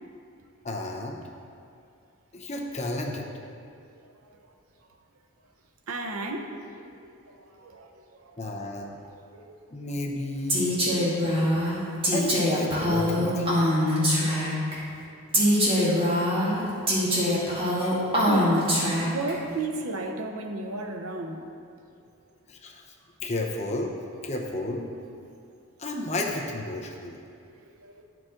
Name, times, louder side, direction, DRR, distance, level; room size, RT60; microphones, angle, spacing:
voice 1, 0.6-1.2 2.3-3.3 8.4-8.9 9.7-10.7 12.1-13.6 17.8-18.2 22.5-22.8 23.2-23.9 24.2-24.9 25.8-27.2, left 2 dB, 30° left, 0 dB, 0.7 m, -32 dB
voice 2, 5.9-7.9 8.2-8.3 9.3-9.6 18.3-18.7 19.0-21.4 27.5-28.0, right 2 dB, 80° right, 4 dB, 0.7 m, -34 dB
Female speech woman speaking, 10.5-14.7 15.3-19.3, equal, 25° right, 1.4 m, -23 dB
11.0 x 4.7 x 3.8 m, 2.5 s
head